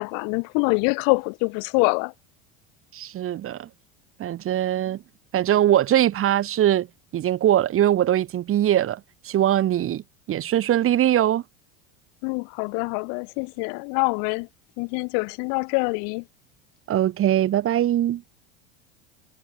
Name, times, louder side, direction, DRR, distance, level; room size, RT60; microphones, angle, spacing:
voice 1, 0.0-2.1 12.2-14.5 14.8-16.2, left 40 dB or more, 65° left, 7.4 m, -25 dB
voice 2, 2.9-3.7 4.2-5.0 5.3-6.9 7.1-10.0 10.3-11.4 16.9-18.2, right 12 dB, 40° right, 3.6 m, -21 dB
supercardioid pair, 115°, 34 cm